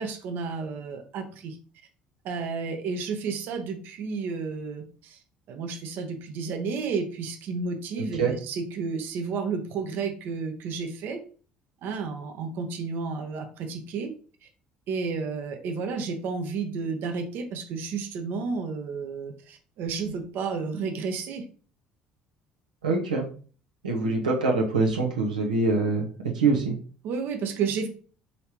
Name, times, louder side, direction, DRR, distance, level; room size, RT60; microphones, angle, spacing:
voice 1, 0.0-1.6 2.2-5.2 5.5-11.2 11.8-14.1 14.4-14.5 14.9-21.4 27.0-27.9, right 5 dB, 60° right, 4 dB, 0.9 m, -32 dB
voice 2, 8.0-8.3 22.8-23.3 23.8-26.0 26.3-26.7, right 3 dB, 90° right, 0 dB, 0.9 m, -24 dB
5.5 x 3.3 x 2.9 m, 0.40 s
hypercardioid pair, 60°, 4 cm